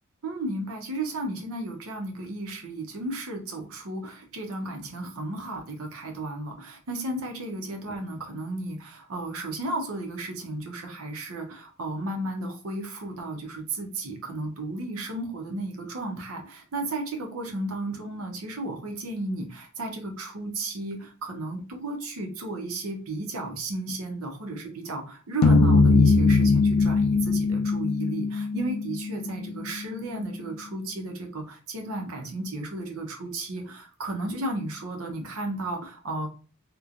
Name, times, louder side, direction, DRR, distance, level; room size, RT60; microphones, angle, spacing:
voice 1, 0.2-36.3, right 2 dB, 75° right, 3 dB, 0.7 m, -34 dB
sound 1, 25.4-29.8, left 3 dB, 85° left, 0.4 m, -21 dB
3.0 x 2.1 x 2.4 m, 0.38 s
head